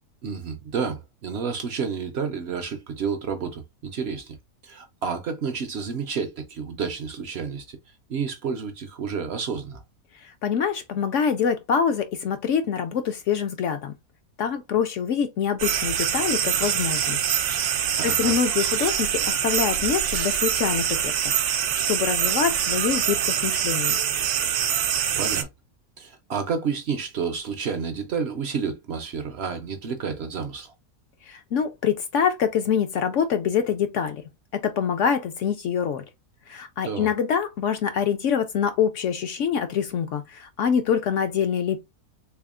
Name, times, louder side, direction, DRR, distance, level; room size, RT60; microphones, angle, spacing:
voice 1, 0.2-4.4 4.6-7.8 8.1-9.8 18.0-18.4 25.2-25.5 26.0-30.7 36.8-37.1, right 6 dB, 65° right, 0.6 m, -30 dB
voice 2, 10.2-13.9 14.4-17.2 17.5-21.3 21.9-24.0 31.3-34.2 34.5-36.0 36.5-41.8, left 7 dB, 70° left, 0.7 m, -25 dB
sound 1, 15.6-25.4, right 9 dB, 80° right, 1.1 m, -24 dB
3.5 x 3.4 x 2.4 m
omnidirectional pair, 1.7 m